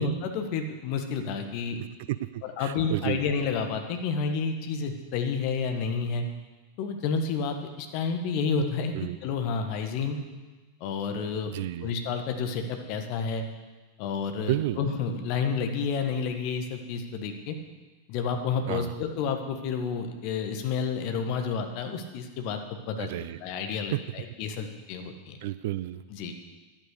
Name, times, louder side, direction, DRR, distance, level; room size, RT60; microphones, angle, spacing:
voice 1, 0.0-1.8 2.4-6.2 6.8-10.2 10.8-11.5 11.8-13.4 14.0-17.5 18.1-22.6 22.9-23.1 23.4-25.4 26.1-26.3, left 5 dB, 45° left, 6 dB, 1.4 m, -30 dB
voice 2, 2.1-3.2 8.9-9.2 11.5-11.9 14.4-14.8 18.7-18.9 23.0-23.4 23.9-24.0 25.4-26.0, right 15 dB, 50° right, 15 dB, 0.4 m, -31 dB
11.5 x 8.9 x 6.6 m, 1.3 s
figure-of-eight pair, 90°, 0 cm